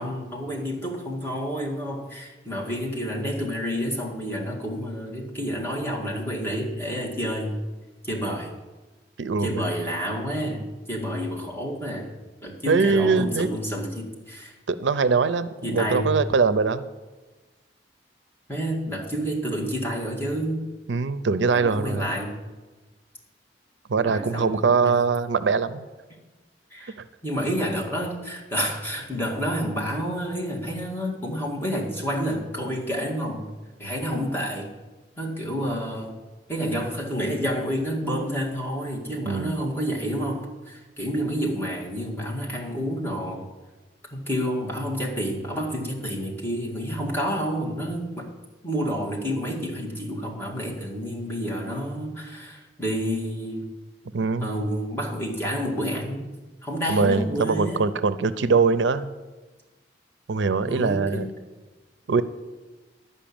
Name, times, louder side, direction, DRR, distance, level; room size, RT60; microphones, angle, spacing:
voice 1, 0.0-7.6 8.0-8.5 9.4-12.1 12.4-14.6 15.6-16.1 18.5-20.7 21.5-22.4 24.0-25.0 26.7-27.0 27.2-33.5 33.8-34.7 35.2-36.2 36.5-43.5 44.1-48.3 48.6-53.7 54.4-56.3 56.6-57.8 60.7-61.3, equal, 10° left, -3 dB, 1.9 m, -29 dB
voice 2, 9.2-9.6 12.7-13.5 14.7-16.8 20.9-22.0 23.9-25.8 27.0-27.1 39.2-39.6 54.1-54.6 56.9-59.1 60.3-61.3 62.1-62.2, right 4 dB, 85° right, 13 dB, 0.5 m, -22 dB
11.5 x 5.5 x 8.6 m, 1.2 s
head